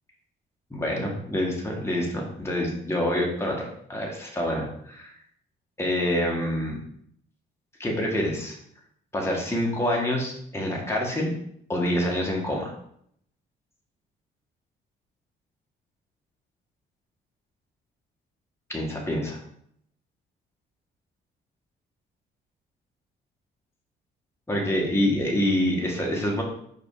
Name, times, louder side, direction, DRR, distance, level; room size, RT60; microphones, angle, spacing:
voice 1, 0.7-5.1 5.8-6.8 7.8-8.6 9.1-11.3 11.7-12.7 18.7-19.4 24.5-26.4, left 1 dB, 15° left, -2 dB, 1.9 m, -26 dB
5.4 x 4.2 x 5.0 m, 0.69 s
cardioid pair, 90°, 20 cm